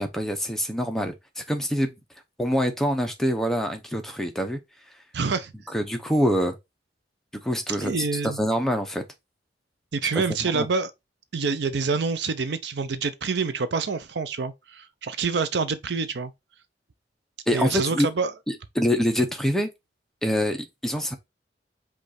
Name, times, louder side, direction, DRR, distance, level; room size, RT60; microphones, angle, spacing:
voice 1, 0.0-1.9 2.4-4.6 5.7-6.6 7.3-9.0 10.1-10.7 17.5-18.1 18.5-19.7 20.2-21.2, equal, ahead, 0.6 m, -25 dB
voice 2, 5.1-5.5 7.8-8.4 9.9-10.9 11.3-16.3 17.5-18.3, right 4 dB, 65° right, 0.5 m, -27 dB
5.2 x 2.4 x 4.1 m
head